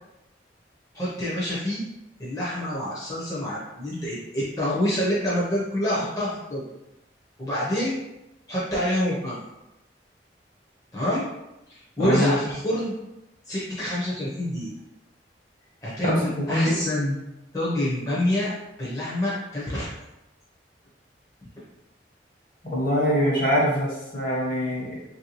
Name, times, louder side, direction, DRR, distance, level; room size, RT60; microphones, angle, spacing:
voice 1, 0.9-1.8 2.2-6.6 7.4-8.0 8.5-9.4 10.9-11.2 11.7-12.9 13.5-14.7 15.8-17.2 17.5-18.5 18.8-19.9, left 1 dB, 20° left, -7 dB, 0.6 m, -27 dB
voice 2, 12.0-12.3 16.0-16.7 22.6-25.0, equal, 50° left, -4 dB, 1.0 m, -23 dB
3.1 x 2.7 x 2.9 m, 0.94 s
head